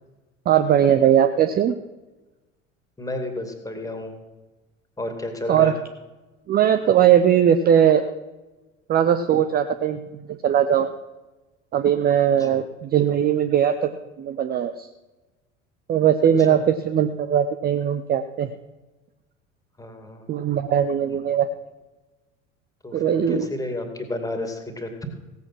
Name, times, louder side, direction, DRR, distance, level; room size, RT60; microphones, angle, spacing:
voice 1, 0.5-1.7 5.5-5.8 6.5-8.1 8.9-10.0 10.4-10.9 11.7-13.9 14.2-14.9 15.9-18.5 20.3-21.5 22.9-23.5, right 9 dB, 25° right, 9 dB, 0.6 m, -19 dB
voice 2, 3.0-4.1 5.0-5.7 12.4-12.6 16.5-16.6 19.8-20.3 22.8-24.9, left 1 dB, 10° left, 5 dB, 2.4 m, -31 dB
16.5 x 8.1 x 6.2 m, 1.1 s
figure-of-eight pair, 70°, 38 cm